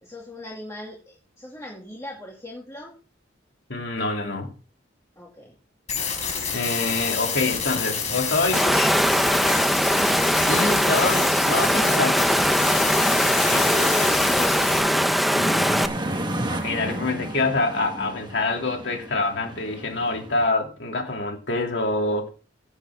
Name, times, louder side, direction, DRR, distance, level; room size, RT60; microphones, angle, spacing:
voice 1, 0.0-2.9 5.2-5.6 13.2-15.1, left 1 dB, 15° left, 2.4 m, -37 dB
voice 2, 3.7-4.5 6.5-8.6 10.5-12.4 16.5-22.3, left 3 dB, 65° left, 2.8 m, -26 dB
sound 1, 5.9-14.8, left 6 dB, 40° left, 4.3 m, -28 dB
Water, 8.5-15.9, equal, ahead, 0.7 m, -21 dB
sound 2, 15.3-20.5, right 1 dB, 25° right, 1.4 m, -32 dB
16.5 x 8.1 x 3.7 m
head